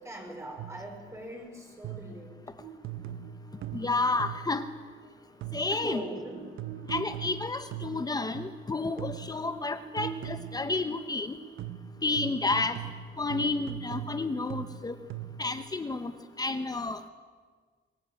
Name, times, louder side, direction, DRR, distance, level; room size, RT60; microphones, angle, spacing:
voice 1, 0.0-2.7 5.7-6.6, right 1 dB, 15° right, 1 dB, 5.1 m, -41 dB
sound 1, 0.6-1.0 1.8-2.3 2.8-4.6 5.4-5.9 6.6-8.7 9.0-9.5 10.0-10.7 11.6-15.6, right 10 dB, 80° right, 1.0 m, -40 dB
Buzz, 2.6-12.0, right 8 dB, 55° right, 2.5 m, -47 dB
voice 2, 3.7-4.6 5.5-6.0 6.9-11.4 12.0-12.8 13.2-15.0 15.4-16.1 16.4-17.1, left 3 dB, 20° left, 9 dB, 1.0 m, -30 dB
24.0 x 19.5 x 9.1 m, 1.5 s
wide cardioid pair, 170°, 21 cm